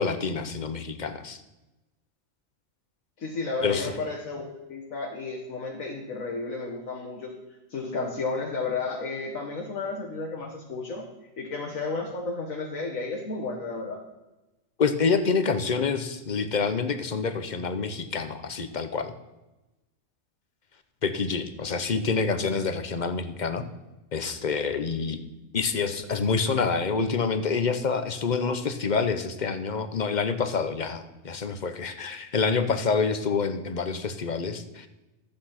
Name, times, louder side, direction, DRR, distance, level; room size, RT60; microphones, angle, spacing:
voice 1, 0.0-1.4 3.6-3.9 14.8-19.1 21.0-23.6 24.1-25.2 25.5-34.9, left 5 dB, 35° left, 10 dB, 0.9 m, -27 dB
voice 2, 3.2-7.3 7.7-11.0 11.4-14.0, left 3 dB, 70° left, 0 dB, 1.9 m, -32 dB
13.5 x 8.8 x 5.8 m, 1.0 s
omnidirectional pair, 1.5 m